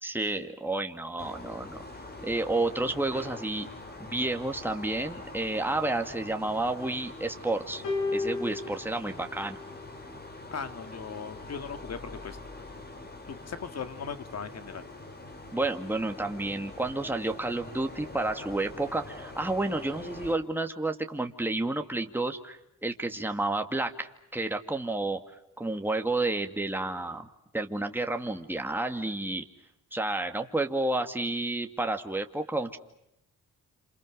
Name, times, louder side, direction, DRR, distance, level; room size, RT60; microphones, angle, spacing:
voice 1, 0.0-1.8 2.2-3.7 4.0-7.8 8.1-9.6 15.5-25.2 25.6-27.3 27.5-29.4 29.9-32.8, right 2 dB, 5° right, 5 dB, 2.3 m, -30 dB
sound 1, 1.2-20.4, left 2 dB, 30° left, 4.2 m, -44 dB
sound 2, 7.8-10.3 11.3-11.5, left 3 dB, 80° left, 6.2 m, -34 dB
voice 2, 10.5-12.4 13.3-14.8, left 6 dB, 55° left, 10 dB, 2.2 m, -38 dB
28.5 x 27.5 x 6.4 m, 0.83 s
cardioid pair, 85°, 31 cm